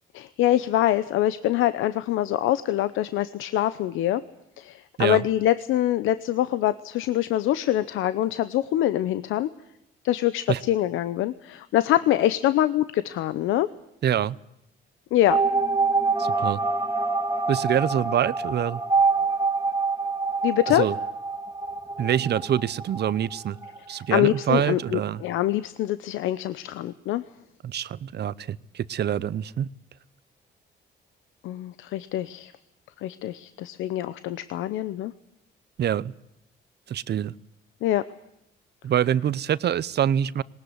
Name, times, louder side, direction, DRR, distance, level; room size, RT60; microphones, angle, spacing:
voice 1, 0.1-4.2 4.6-9.5 10.0-13.7 15.1-15.4 20.4-20.9 24.1-27.2 31.4-32.5 33.0-35.1 37.8-38.0, left 13 dB, 90° left, 14 dB, 0.8 m, -24 dB
voice 2, 14.0-14.4 16.2-16.6 17.5-18.8 20.7-20.9 22.0-23.6 23.9-25.2 27.6-29.7 35.8-36.1 36.9-37.3 38.8-40.4, right 10 dB, 55° right, 19 dB, 0.8 m, -25 dB
sound 1, 15.3-23.8 24.1-24.2 24.4-24.5, right 4 dB, 15° right, 2.3 m, -26 dB
19.5 x 19.0 x 9.7 m, 0.84 s
cardioid pair, 90°, 20 cm